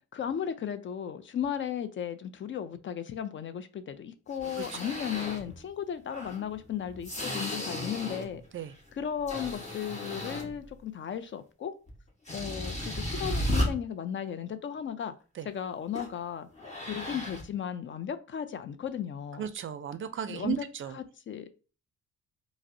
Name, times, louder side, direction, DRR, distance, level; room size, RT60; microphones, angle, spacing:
voice 1, 0.1-8.4 8.9-11.7 12.3-15.1 15.4-16.5 16.8-19.5 20.3-20.6 20.9-21.5, left 8 dB, 40° left, 0.4 m, -35 dB
sound 1, 4.3-5.6 6.1-8.4 8.8-10.7 11.9-12.0 12.3-13.7 15.9-16.2 16.5-17.4, left 1 dB, 25° left, 1.3 m, -34 dB
voice 2, 19.4-21.0, right 9 dB, 45° right, 0.4 m, -35 dB
4.8 x 2.1 x 2.6 m
cardioid pair, 90°, 30 cm